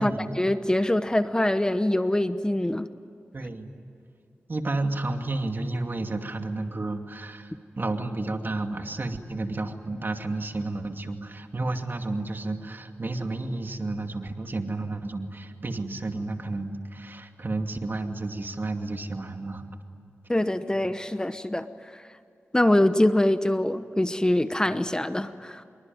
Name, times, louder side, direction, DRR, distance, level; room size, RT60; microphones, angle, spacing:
voice 1, 0.4-2.9 20.3-22.0 22.5-25.6, left 1 dB, 15° left, 11 dB, 1.0 m, -24 dB
voice 2, 3.3-3.7 4.5-19.7, right 2 dB, 45° right, 5 dB, 2.5 m, -31 dB
26.5 x 23.0 x 9.4 m, 2.6 s
cardioid pair, 50°, 5 cm